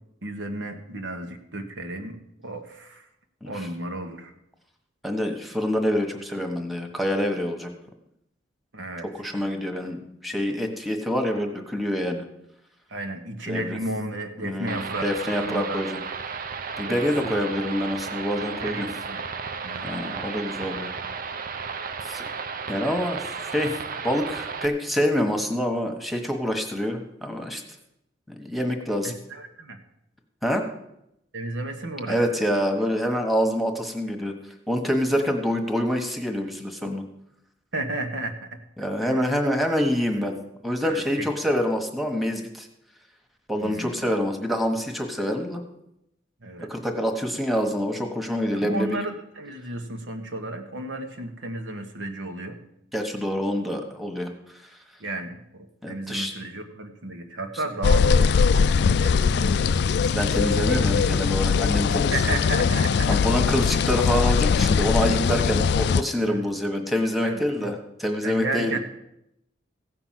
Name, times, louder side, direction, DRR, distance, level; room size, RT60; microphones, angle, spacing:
voice 1, 0.2-2.2 2.4-3.0 3.4-4.3 8.7-9.3 12.9-15.8 16.9-17.3 18.6-19.3 19.6-20.2 29.0-29.8 31.3-32.5 37.7-38.6 39.0-39.3 40.8-41.6 43.6-44.0 46.4-46.7 48.5-52.6 55.0-59.7 62.1-63.1 66.2-66.5 67.2-67.7 68.2-68.8, right 2 dB, 85° right, 4 dB, 1.5 m, -33 dB
voice 2, 5.0-7.7 9.2-12.2 13.5-13.8 14.4-16.0 16.8-18.9 19.8-20.9 22.0-22.3 22.7-27.6 28.4-29.1 30.4-30.6 32.1-34.3 34.7-37.0 38.8-40.4 40.6-42.7 43.5-45.6 46.7-49.0 52.9-54.3 55.8-56.3 60.1-62.3 63.1-68.8, equal, ahead, 3 dB, 1.4 m, -26 dB
sound 1, 14.7-24.7, right 5 dB, 50° right, 0.6 m, -34 dB
sound 2, 57.8-66.0, left 5 dB, 60° left, 0.3 m, -21 dB
15.5 x 5.9 x 7.6 m, 0.81 s
head